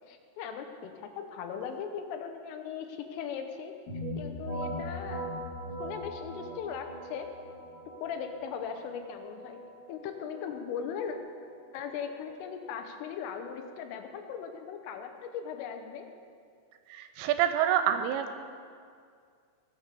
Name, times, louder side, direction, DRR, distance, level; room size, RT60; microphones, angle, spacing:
voice 1, 0.1-5.3 5.8-7.3 8.0-9.6 9.9-11.2 11.7-16.1, left 7 dB, 80° left, 6 dB, 3.4 m, -39 dB
sound 1, 3.9-13.5, equal, 45° left, 4.6 m, -41 dB
voice 2, 16.9-18.3, right 10 dB, 85° right, 9 dB, 3.0 m, -27 dB
19.0 x 6.8 x 6.7 m, 2.2 s
omnidirectional pair, 5.9 m